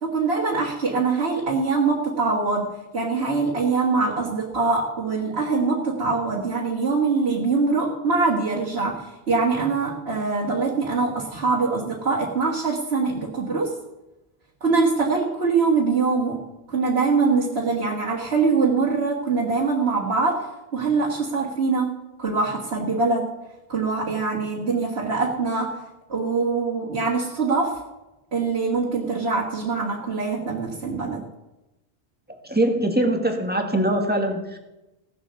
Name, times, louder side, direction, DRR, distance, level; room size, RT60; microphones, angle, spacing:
voice 1, 0.0-13.7 14.6-16.4 16.7-21.9 22.2-23.3 23.7-25.8 26.1-27.8 28.3-31.2, right 4 dB, 80° right, -3 dB, 2.0 m, -23 dB
voice 2, 32.4-34.6, right 1 dB, 10° right, 3 dB, 1.7 m, -22 dB
17.0 x 7.5 x 6.9 m, 0.98 s
omnidirectional pair, 1.0 m